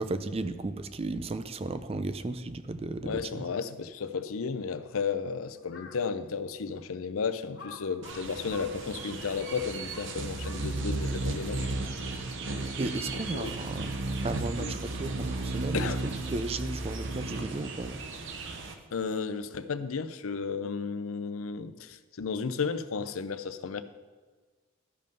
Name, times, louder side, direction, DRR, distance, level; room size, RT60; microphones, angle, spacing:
voice 1, 0.0-3.4 12.8-13.9 14.2-18.0, right 2 dB, 30° right, 11 dB, 0.4 m, -35 dB
voice 2, 3.0-11.7 13.1-13.5 14.6-14.7 15.7-16.0 18.9-23.8, left 5 dB, 80° left, 12 dB, 0.6 m, -33 dB
Crow, 5.6-6.1 6.7-6.8 7.5-11.0, left 3 dB, 55° left, 1.0 m, -48 dB
sound 1, 8.0-18.7, right 2 dB, 60° right, 0.9 m, -34 dB
12.0 x 5.4 x 5.3 m, 1.4 s
head